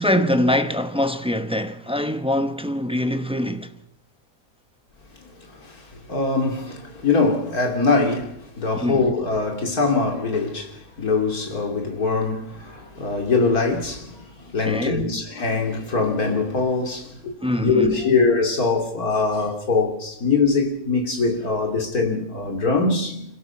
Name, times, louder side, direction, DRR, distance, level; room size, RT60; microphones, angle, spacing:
voice 1, 0.0-3.7 8.7-9.1 14.6-15.1 17.4-18.1, left 1 dB, 5° right, 0.7 m, -23 dB
voice 2, 5.5-23.2, left 4 dB, 90° left, 3.4 m, -23 dB
26.5 x 17.0 x 5.9 m
omnidirectional pair, 1.5 m